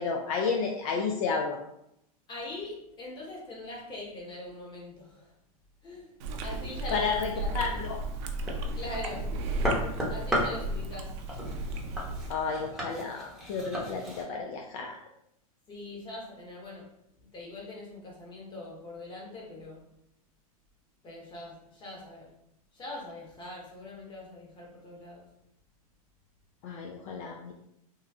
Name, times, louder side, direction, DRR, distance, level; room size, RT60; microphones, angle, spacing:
voice 1, 0.0-1.6 6.9-8.0 12.3-14.9 26.6-27.5, left 5 dB, 60° left, 1 dB, 0.5 m, -31 dB
voice 2, 2.3-5.3 5.8-6.1 6.4-7.5 8.7-9.3 10.1-11.2 15.7-16.9 17.3-19.8 21.0-22.3 22.7-25.3, left 2 dB, 25° left, -3 dB, 1.2 m, -42 dB
Chewing mastication, 6.2-12.3, right 2 dB, 50° right, 0.5 m, -34 dB
sound 1, 7.8-14.2, equal, ahead, 0.9 m, -35 dB
3.1 x 2.2 x 3.5 m, 0.79 s
hypercardioid pair, 125°, 19 cm